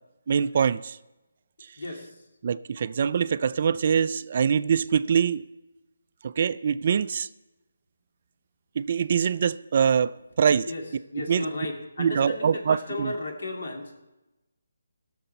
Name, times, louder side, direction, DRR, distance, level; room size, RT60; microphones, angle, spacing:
voice 1, 0.3-1.0 2.4-5.4 6.2-7.3 8.8-10.7 11.2-11.4 12.0-13.1, right 7 dB, 45° right, 0.3 m, -24 dB
voice 2, 1.8-2.1 10.7-10.9 11.1-13.9, left 2 dB, 65° left, 2.5 m, -34 dB
16.0 x 6.7 x 5.6 m
hypercardioid pair, 165°, 0 cm